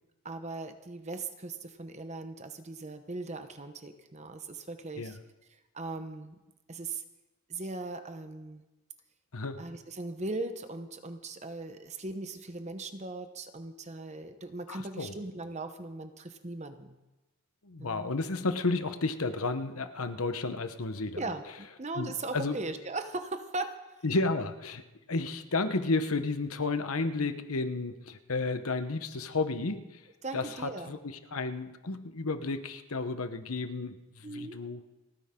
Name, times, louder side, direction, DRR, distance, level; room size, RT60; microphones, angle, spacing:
voice 1, 0.2-5.2 5.5-6.4 6.7-7.0 7.5-8.6 9.6-17.0 17.8-18.1 21.2-23.7 30.2-31.0 34.2-34.6, right 2 dB, 30° right, 8 dB, 1.0 m, -39 dB
voice 2, 9.3-9.6 14.7-15.1 17.6-21.2 22.0-22.6 24.0-24.8 25.1-30.0 30.3-34.9, left 3 dB, 80° left, 9 dB, 1.1 m, -32 dB
30.0 x 10.0 x 3.8 m, 1.0 s
head